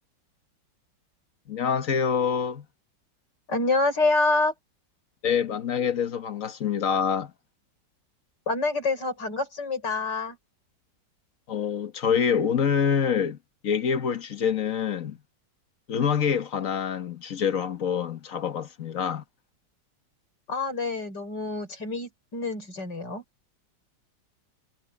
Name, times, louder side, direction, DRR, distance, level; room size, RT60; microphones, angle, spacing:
voice 1, 1.5-2.6 5.2-7.3 11.5-13.4 13.6-15.2 15.9-19.2, left 7 dB, 50° left, 1.6 m, -26 dB
voice 2, 3.5-4.5 8.5-10.4 20.5-23.2, left 3 dB, 70° left, 5.4 m, -27 dB
omnidirectional pair, 1.9 m